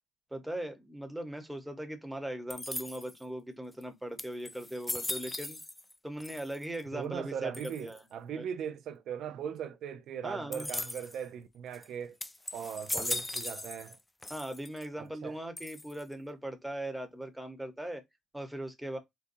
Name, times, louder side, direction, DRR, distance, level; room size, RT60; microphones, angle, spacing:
voice 1, 0.3-5.6 6.0-8.0 8.3-8.4 10.2-10.7 14.3-18.0 18.3-19.0, right 1 dB, 5° right, 0.9 m, -39 dB
sound 1, 2.5-3.2 3.8-3.9 4.2-5.9 6.2-6.8 7.5-8.0 10.5-11.2 11.7-11.9 12.2-14.0 14.2-14.9 15.6-16.1, left 1 dB, 15° left, 0.3 m, -38 dB
voice 2, 6.9-12.2 12.5-14.0 15.0-15.4, right 8 dB, 75° right, 0.4 m, -39 dB
4.1 x 2.2 x 2.5 m
cardioid pair, 90°, 0 cm